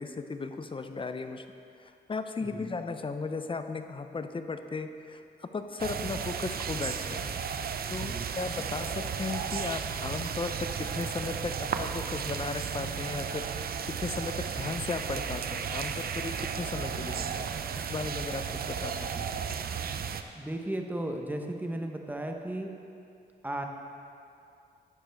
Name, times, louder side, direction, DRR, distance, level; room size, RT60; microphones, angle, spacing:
voice 1, 0.0-1.5 1.8-7.3 7.9-17.5 17.7-19.1, left 4 dB, 30° left, 8 dB, 0.6 m, -36 dB
voice 2, 2.4-2.7 8.0-8.3 19.0-19.3 20.3-22.7 23.4-23.6, right 1 dB, 10° right, 3 dB, 1.0 m, -35 dB
sound 1, 5.8-20.2, right 7 dB, 60° right, 0.5 m, -34 dB
12.0 x 9.0 x 3.5 m, 2.6 s
cardioid pair, 85°, 17 cm